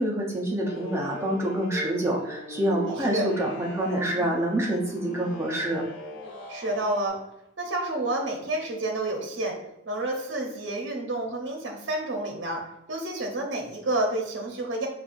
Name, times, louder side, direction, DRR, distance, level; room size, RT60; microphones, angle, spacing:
voice 1, 0.0-5.8, right 1 dB, 15° right, -3 dB, 0.6 m, -27 dB
sound 1, 0.6-7.1, equal, 75° left, 0.7 m, -40 dB
voice 2, 2.9-3.3 6.5-7.2 7.6-9.6 9.9-12.6 12.9-14.9, right 2 dB, 65° right, 1 dB, 0.7 m, -29 dB
5.3 x 2.4 x 2.5 m, 0.84 s
head